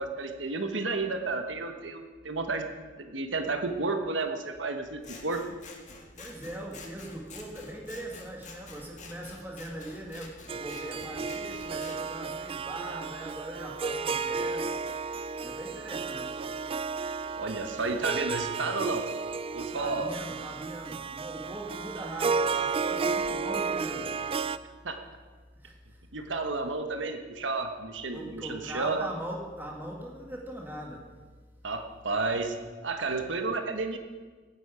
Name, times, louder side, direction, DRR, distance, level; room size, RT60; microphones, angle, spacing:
voice 1, 0.0-2.6 3.0-5.5 17.4-19.0 19.5-20.1 24.8-25.0 26.1-29.0 31.6-32.6 32.8-34.0, right 3 dB, 80° right, 6 dB, 1.2 m, -31 dB
Scissors, 5.0-12.0, left 4 dB, 40° left, 1.9 m, -49 dB
voice 2, 6.2-14.8 15.4-16.4 19.7-24.4 25.6-26.0 28.1-31.1, right 1 dB, 10° right, -1 dB, 2.0 m, -41 dB
Harp, 10.5-24.6, right 5 dB, 30° right, 0.3 m, -33 dB
17.5 x 10.0 x 5.0 m, 1.4 s
head